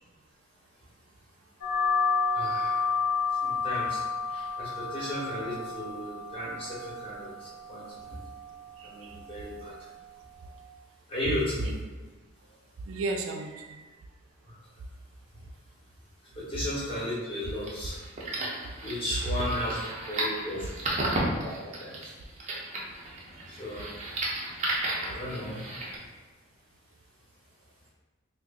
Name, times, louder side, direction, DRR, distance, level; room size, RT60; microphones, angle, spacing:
sound 1, 1.6-10.7, left 4 dB, 85° left, 0.6 m, -32 dB
voice 1, 2.3-2.8 3.4-8.2 8.8-9.7 11.1-11.7 14.4-14.5 16.3-18.0 18.8-19.8 20.1-20.6 21.4-21.5 21.8-22.1 23.5-24.2 25.0-25.6, left 1 dB, 30° left, -8 dB, 1.2 m, -35 dB
voice 2, 8.8-9.2 11.3-11.7 12.9-13.8 16.8-16.9 19.2-19.3 20.9-21.6 23.1-23.2, right 2 dB, 80° right, 4 dB, 0.4 m, -35 dB
sound 2, 17.5-26.0, right 2 dB, 35° right, 0.7 m, -34 dB
3.1 x 2.5 x 3.6 m, 1.3 s
head